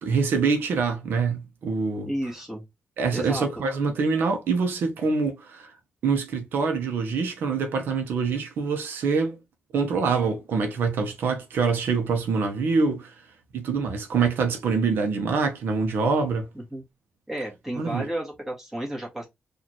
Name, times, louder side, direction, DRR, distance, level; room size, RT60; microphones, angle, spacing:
voice 1, 0.0-2.1 3.0-5.7 6.0-9.4 9.7-13.1 13.5-16.5 17.8-18.1, right 5 dB, 80° right, 0.9 m, -25 dB
voice 2, 2.1-2.6 3.1-3.5 16.5-16.8 17.3-19.3, right 1 dB, 10° right, 1.8 m, -32 dB
4.2 x 2.6 x 3.0 m
wide cardioid pair, 135°, 4 cm